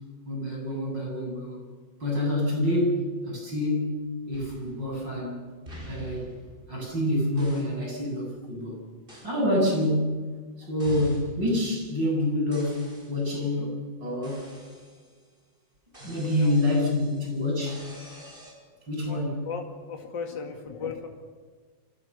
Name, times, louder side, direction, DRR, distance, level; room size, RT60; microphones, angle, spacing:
voice 1, 0.3-1.7 2.0-4.0 4.3-5.5 5.9-6.3 6.7-8.8 9.2-10.2 10.6-14.5 16.0-17.9 18.9-19.4, left 1 dB, 70° right, -1 dB, 8.8 m, -27 dB
sound 1, 4.3-5.3 5.7-7.0 7.4-7.8 9.1-9.4 10.8-11.3 12.5-13.3 14.2-15.3 15.9-18.5, equal, 30° right, 7.3 m, -48 dB
voice 2, 19.1-21.1, left 5 dB, 70° left, 2 dB, 3.0 m, -36 dB
29.0 x 25.5 x 7.0 m, 1.5 s
omnidirectional pair, 2.0 m